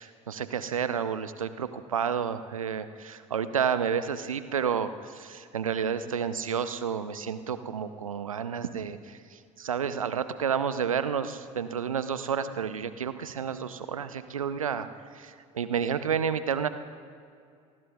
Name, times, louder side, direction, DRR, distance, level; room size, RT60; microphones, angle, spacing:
voice 1, 0.0-14.9 15.1-16.7, right 7 dB, 80° right, 12 dB, 0.7 m, -30 dB
28.5 x 19.5 x 2.4 m, 2.3 s
figure-of-eight pair, 60°, 17 cm